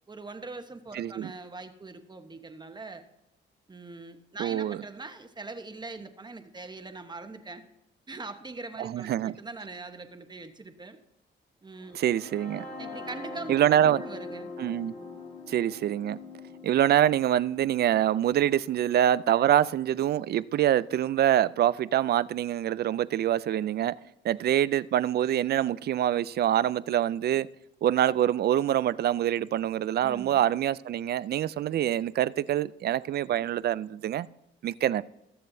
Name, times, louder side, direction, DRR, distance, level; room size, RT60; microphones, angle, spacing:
voice 1, 0.1-3.0 3.7-7.6 8.1-11.0 11.6-12.0 12.8-13.6 13.8-14.5 30.0-30.4, right 3 dB, 20° right, 1.1 m, -42 dB
voice 2, 0.9-1.3 4.4-4.8 8.8-9.3 11.9-12.6 13.5-14.0 14.6-14.9 15.5-16.2 16.6-23.9 24.2-27.5 27.8-34.3 34.6-35.0, right 11 dB, 55° right, 0.4 m, -25 dB
sound 1, 11.8-19.7, left 3 dB, 50° left, 2.5 m, -43 dB
20.5 x 7.4 x 2.7 m
cardioid pair, 90°, 20 cm